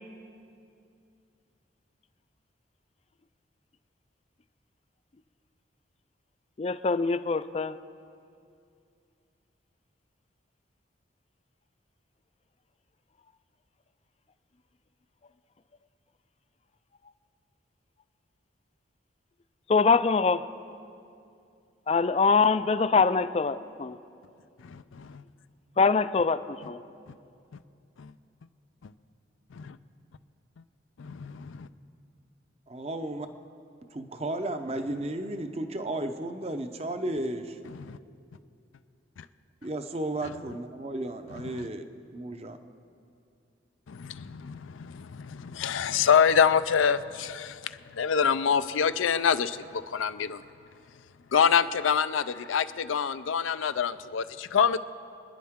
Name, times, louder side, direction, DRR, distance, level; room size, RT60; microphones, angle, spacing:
voice 1, 6.6-7.8 19.7-20.4 21.9-24.0 25.8-26.8, left 4 dB, 30° left, 0.3 m, -24 dB
voice 2, 24.7-25.2 28.0-28.1 29.6-29.8 31.0-31.7 37.8-38.0 43.9-47.6 48.0-49.6 49.9-50.4 51.3-54.8, left 7 dB, 90° left, 0.5 m, -26 dB
voice 3, 32.7-33.3 33.9-37.6 39.6-42.6, right 1 dB, 30° right, 0.7 m, -34 dB
26.0 x 10.5 x 3.7 m
head